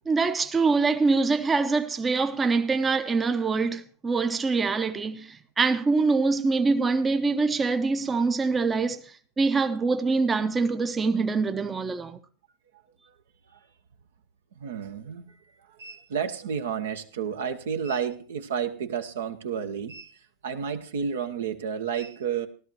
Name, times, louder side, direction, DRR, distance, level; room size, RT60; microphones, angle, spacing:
voice 1, 0.1-12.2, right 4 dB, 20° right, 0.7 m, -24 dB
voice 2, 14.6-15.4 15.7-20.1 20.4-22.5, right 7 dB, 70° right, 0.9 m, -31 dB
16.5 x 12.5 x 2.9 m
figure-of-eight pair, 85°, 0 cm